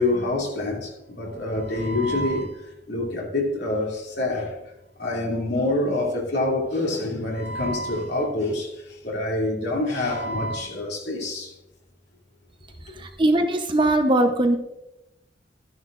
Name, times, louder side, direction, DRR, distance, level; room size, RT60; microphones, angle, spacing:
voice 1, 0.0-4.6 5.0-8.7 9.0-11.5, left 2 dB, 65° left, 2.7 m, -26 dB
voice 2, 13.0-14.6, right 1 dB, 25° right, 0.8 m, -20 dB
13.0 x 9.8 x 2.5 m
head